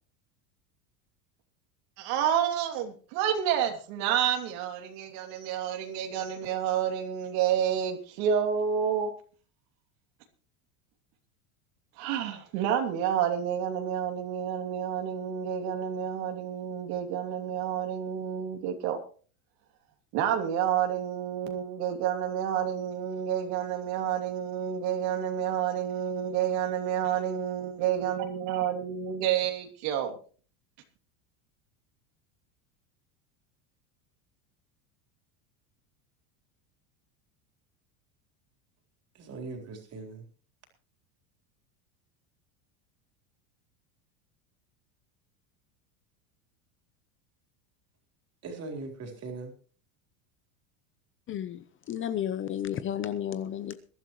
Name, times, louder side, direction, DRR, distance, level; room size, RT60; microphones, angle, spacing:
voice 1, 2.0-9.1 12.0-19.0 20.1-30.1, right 9 dB, 65° right, 2.9 m, -29 dB
voice 2, 39.1-40.3 48.4-49.5, right 3 dB, 35° right, 3.9 m, -40 dB
voice 3, 51.3-53.7, left 10 dB, 30° left, 0.7 m, -32 dB
21.5 x 12.0 x 3.1 m
supercardioid pair, 140°, 43 cm